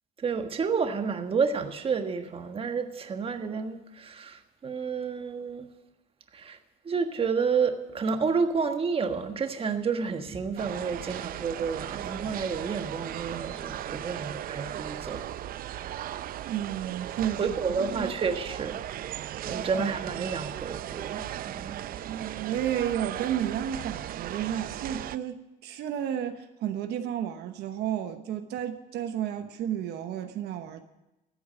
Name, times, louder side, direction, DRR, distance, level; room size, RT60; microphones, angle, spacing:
voice 1, 0.2-5.7 6.3-6.6 6.8-15.2 17.4-19.1 19.4-21.8, right 5 dB, 35° right, 6 dB, 1.5 m, -30 dB
sound 1, 10.6-25.2, right 12 dB, 60° right, 0.6 m, -37 dB
voice 2, 16.4-17.4 17.9-18.1 19.5-19.6 22.0-25.4 25.6-30.8, right 10 dB, 75° right, 7 dB, 1.1 m, -32 dB
14.5 x 8.5 x 9.5 m, 0.99 s
cardioid pair, 110°, 17 cm